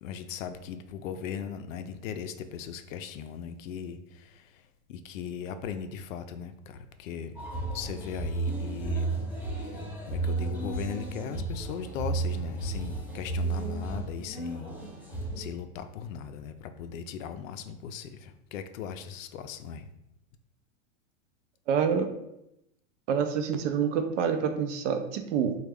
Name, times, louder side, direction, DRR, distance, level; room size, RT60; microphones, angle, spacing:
voice 1, 0.0-4.6 4.9-7.4 7.7-9.1 9.5-14.7 15.4-19.9, left 7 dB, 75° left, 9 dB, 0.5 m, -38 dB
sound 1, 7.4-15.4, right 3 dB, 5° right, 0.8 m, -33 dB
voice 2, 21.7-22.1 23.1-25.6, right 7 dB, 65° right, 7 dB, 0.6 m, -27 dB
3.4 x 2.3 x 3.4 m, 0.83 s
hypercardioid pair, 130°, 40 cm